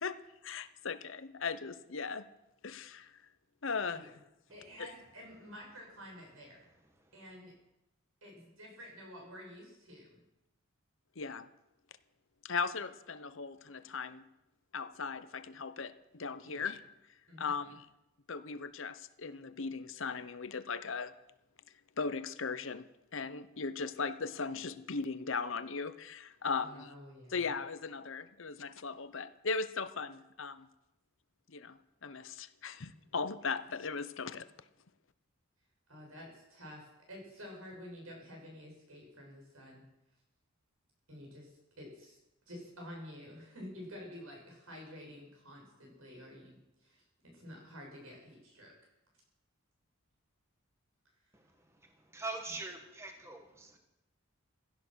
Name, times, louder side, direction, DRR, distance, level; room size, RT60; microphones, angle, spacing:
voice 1, 0.0-2.3 2.6-3.1 3.6-4.1 4.8-4.9 11.2-11.5 12.4-14.2 14.7-16.8 17.4-17.9 18.3-21.1 22.0-26.9 27.3-30.7 31.5-34.5, left 5 dB, 60° left, 13 dB, 0.8 m, -38 dB
voice 2, 4.5-6.7 7.1-7.5 8.2-10.2 16.4-16.6 17.3-17.8 26.6-27.5 35.9-39.8 41.1-42.2 42.5-48.7 52.5-52.6, equal, 75° right, 0 dB, 7.0 m, -50 dB
voice 3, 52.1-53.8, right 2 dB, 15° right, 4 dB, 1.4 m, -42 dB
16.5 x 12.5 x 6.3 m, 0.94 s
head